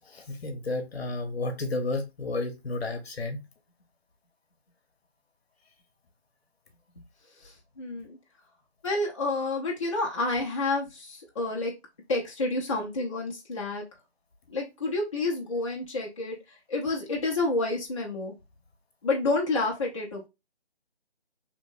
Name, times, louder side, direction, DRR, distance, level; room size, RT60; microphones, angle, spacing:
voice 1, 0.1-3.4, left 2 dB, 65° left, 0.9 m, -32 dB
voice 2, 7.4-8.2 8.8-11.7 12.1-13.8 14.5-18.3 19.0-20.3, left 2 dB, 30° left, 0.6 m, -29 dB
2.9 x 2.9 x 2.7 m
figure-of-eight pair, 160°, 33 cm